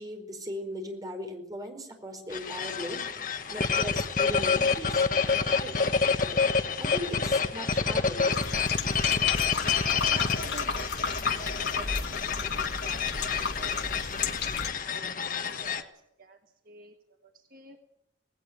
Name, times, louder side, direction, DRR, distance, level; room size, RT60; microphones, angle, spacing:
voice 1, 0.0-3.1 3.5-5.0 5.6-5.8 6.2-8.4, equal, 20° right, 4 dB, 4.7 m, -38 dB
sound 1, 2.3-15.8, left 5 dB, 45° left, 1.4 m, -28 dB
sound 2, 8.3-14.7, left 5 dB, 65° left, 1.9 m, -33 dB
voice 2, 10.1-13.3 13.6-13.9 14.8-16.4 16.7-17.0 17.2-17.8, right 3 dB, 50° right, 4 dB, 1.6 m, -48 dB
19.0 x 18.0 x 9.5 m, 0.75 s
head